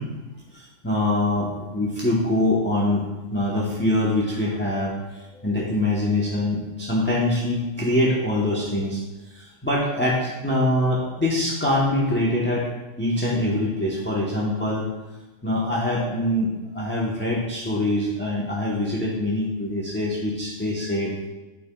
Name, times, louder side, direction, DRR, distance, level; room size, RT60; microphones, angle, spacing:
voice 1, 0.5-3.0 3.3-9.0 9.3-12.7 13.0-14.9 15.4-21.1, left 1 dB, 10° left, -6 dB, 0.8 m, -24 dB
12.0 x 4.3 x 2.3 m, 1.1 s
omnidirectional pair, 1.3 m